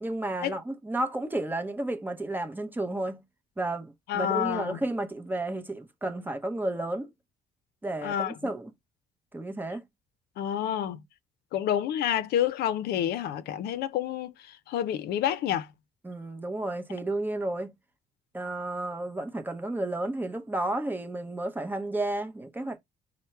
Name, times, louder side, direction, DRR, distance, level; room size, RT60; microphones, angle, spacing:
voice 1, 0.0-3.2 3.6-7.1 7.8-8.7 9.3-9.8 16.0-17.8 18.3-22.8, right 2 dB, 10° right, 0.7 m, -32 dB
voice 2, 4.1-4.8 8.0-8.3 10.4-11.0 11.5-15.7, left 10 dB, 70° left, 0.5 m, -29 dB
4.4 x 2.1 x 4.3 m
cardioid pair, 110°, 17 cm